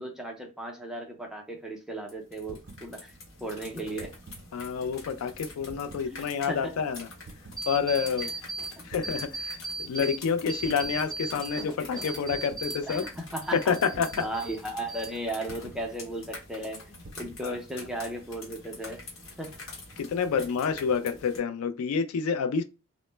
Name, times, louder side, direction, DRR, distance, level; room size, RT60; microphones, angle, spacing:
voice 1, 0.0-3.1 3.4-4.1 6.0-6.7 12.9-19.0 19.4-19.5, right 1 dB, 5° right, 0.4 m, -36 dB
sound 1, 2.1-21.4, left 2 dB, 70° left, 0.9 m, -46 dB
sound 2, 2.4-2.9 3.8-4.5 5.6-6.1 7.2-7.6 8.9-9.3 10.6-11.0 12.3-12.7 13.9-14.3 15.5-15.9 17.0-17.4, right 2 dB, 55° right, 0.6 m, -47 dB
voice 2, 4.5-7.1 7.7-8.3 8.8-13.0 13.5-14.1 17.4-17.6 20.0-22.6, left 6 dB, 85° left, 0.3 m, -28 dB
sound 3, 7.6-8.7 9.0-10.2 10.5-13.1 13.4-14.6 14.9-15.5, right 3 dB, 20° left, 0.8 m, -37 dB
2.1 x 2.0 x 3.1 m
head